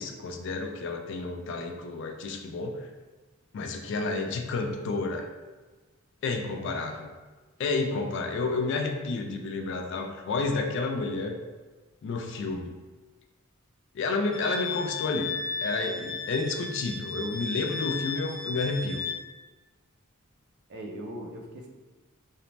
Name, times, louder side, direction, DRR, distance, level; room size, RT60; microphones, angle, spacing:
voice 1, 0.0-2.9 3.5-5.3 6.2-7.1 7.6-11.4 12.0-12.8 13.9-15.3 15.6-19.1, left 3 dB, 60° left, 4 dB, 0.3 m, -30 dB
voice 2, 6.5-6.8 20.7-21.7, right 1 dB, 55° right, 2 dB, 0.4 m, -40 dB
Wind instrument woodwind instrument, 14.3-19.2, left 4 dB, 5° left, 0.5 m, -35 dB
2.6 x 2.0 x 3.1 m, 1.3 s
head